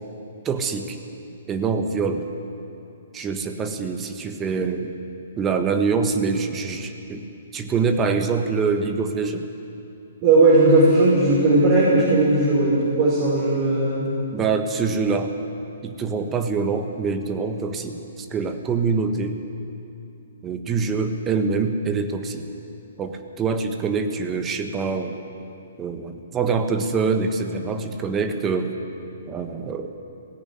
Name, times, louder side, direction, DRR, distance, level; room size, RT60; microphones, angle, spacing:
voice 1, 0.4-1.0 1.5-2.3 3.1-4.9 5.4-7.3 7.5-9.5 14.3-15.3 15.8-19.4 20.4-22.5 23.0-25.2 25.8-28.7 29.3-29.9, right 5 dB, 20° right, 6 dB, 1.4 m, -25 dB
voice 2, 10.2-14.0, right 2 dB, 35° right, -6 dB, 5.3 m, -17 dB
17.5 x 15.5 x 9.6 m, 2.8 s
figure-of-eight pair, 125°, 0 cm